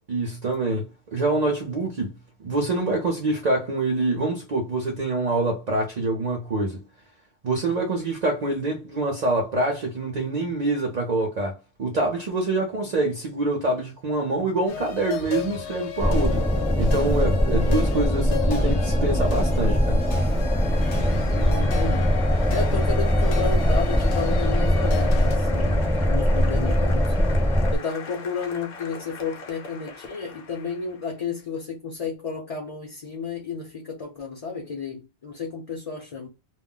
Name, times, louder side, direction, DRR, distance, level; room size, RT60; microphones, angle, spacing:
voice 1, 0.1-6.8 7.4-16.5 16.8-20.0, right 2 dB, 45° right, 0.6 m, -25 dB
sound 1, 14.7-25.4, left 8 dB, 90° left, 0.9 m, -35 dB
sound 2, 16.0-27.8, equal, 5° left, 0.3 m, -21 dB
Applause, 18.7-31.2, left 4 dB, 60° left, 0.9 m, -41 dB
voice 2, 21.3-22.1 22.5-27.4 27.7-36.3, left 5 dB, 40° left, 0.7 m, -32 dB
2.3 x 2.0 x 3.7 m
omnidirectional pair, 1.1 m